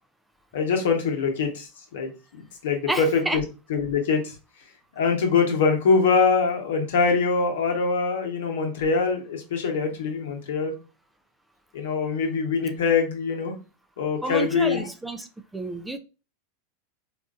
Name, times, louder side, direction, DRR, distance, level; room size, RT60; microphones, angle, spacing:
voice 1, 0.5-2.1 2.6-3.4 3.7-4.3 5.0-10.7 11.7-13.5 14.0-14.8, left 5 dB, 75° left, 1.0 m, -23 dB
voice 2, 2.9-3.4 14.2-15.3 15.5-16.0, right 2 dB, 5° right, 0.4 m, -29 dB
4.0 x 2.5 x 2.4 m
hypercardioid pair, 115°, 0 cm